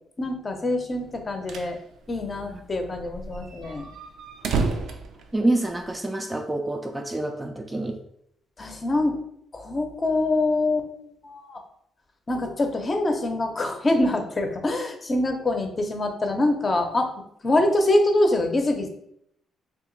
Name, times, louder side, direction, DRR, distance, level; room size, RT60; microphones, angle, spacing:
voice 1, 0.2-1.8 2.1-3.9 8.6-9.2 9.5-10.9 11.2-11.6 12.3-17.1 17.4-18.9, left 2 dB, 30° left, 5 dB, 0.6 m, -24 dB
sound 1, 1.1-1.8 2.1-2.2 2.4-2.5 3.0-6.0, right 4 dB, 75° right, 0.5 m, -30 dB
voice 2, 5.3-8.0, right 2 dB, 15° right, 4 dB, 0.4 m, -27 dB
2.8 x 2.5 x 3.9 m, 0.71 s
cardioid pair, 90°, 0 cm